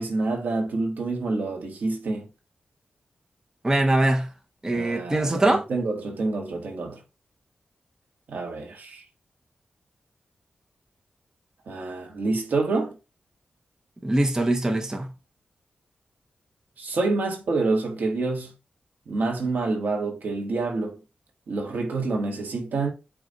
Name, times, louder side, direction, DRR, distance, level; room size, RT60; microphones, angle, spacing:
voice 1, 0.0-2.3 4.7-7.0 8.3-9.0 11.7-12.9 16.8-18.5 19.1-21.0 21.5-22.9, right 3 dB, 85° right, 1.3 m, -27 dB
voice 2, 3.6-4.3 4.6-5.6 14.0-15.1, right 1 dB, 20° right, 0.8 m, -22 dB
4.9 x 2.4 x 3.8 m
wide cardioid pair, 85°, 3 cm